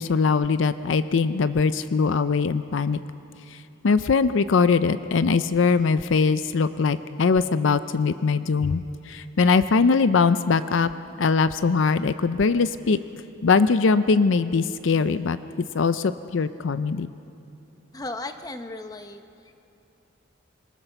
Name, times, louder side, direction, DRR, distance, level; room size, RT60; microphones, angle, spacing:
voice 1, 0.0-3.0 3.8-8.8 9.1-10.9 11.2-13.0 13.4-15.4 15.7-17.1, left 4 dB, 70° left, 12 dB, 0.5 m, -21 dB
voice 2, 17.9-19.5, left 2 dB, 20° left, 7 dB, 0.9 m, -36 dB
26.0 x 17.5 x 6.8 m, 2.9 s
head